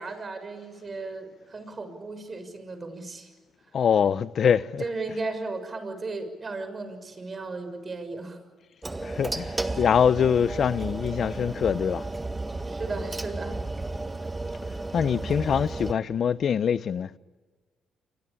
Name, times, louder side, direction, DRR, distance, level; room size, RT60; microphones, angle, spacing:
voice 1, 0.0-3.3 4.8-8.4 12.7-13.6, right 3 dB, 35° right, 6.3 m, -35 dB
voice 2, 3.7-4.8 9.0-12.0 14.9-17.1, left 7 dB, 55° left, 0.9 m, -24 dB
sound 1, 8.8-15.9, right 2 dB, 20° right, 1.7 m, -33 dB
28.5 x 24.0 x 8.7 m
cardioid pair, 90°, 0 cm